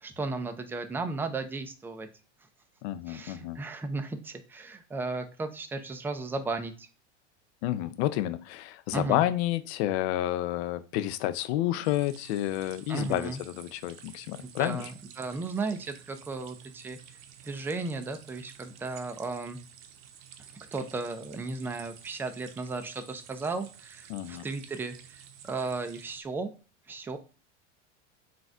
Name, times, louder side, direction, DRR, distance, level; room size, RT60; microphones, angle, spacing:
voice 1, 0.0-2.1 3.1-6.9 8.9-9.2 12.9-13.4 14.6-17.0 17.4-19.6 20.7-26.5 26.9-27.2, right 3 dB, 5° right, 7 dB, 0.4 m, -35 dB
voice 2, 2.8-3.6 7.6-14.9 24.1-24.4, left 14 dB, 65° left, 12 dB, 0.5 m, -30 dB
sound 1, 11.8-26.2, right 9 dB, 45° right, 0.7 m, -51 dB
3.9 x 2.5 x 4.3 m, 0.35 s
hypercardioid pair, 100°, 37 cm